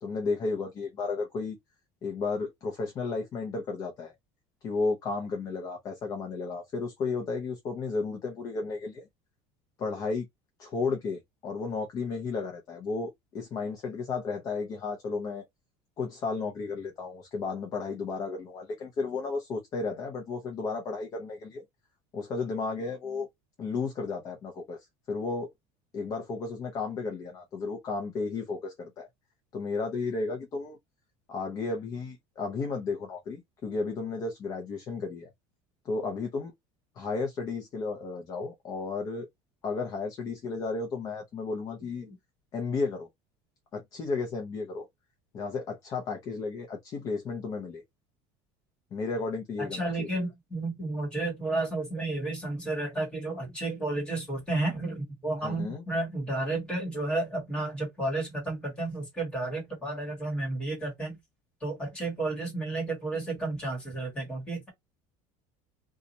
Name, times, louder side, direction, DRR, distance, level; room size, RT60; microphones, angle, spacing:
voice 1, 0.0-1.6 2.0-4.1 4.6-9.1 9.8-10.3 10.6-15.4 16.0-21.6 22.1-23.3 23.6-24.8 25.1-25.5 25.9-29.1 29.5-30.8 31.3-35.3 35.8-36.5 37.0-39.3 39.6-42.1 42.5-43.1 43.7-44.9 45.3-47.8 48.9-50.1 55.4-55.8, left 4 dB, 25° left, 0.6 m, -33 dB
voice 2, 49.6-61.2 61.6-64.7, right 2 dB, 5° left, 1.5 m, -32 dB
2.7 x 2.3 x 4.0 m
cardioid pair, 180°, 14 cm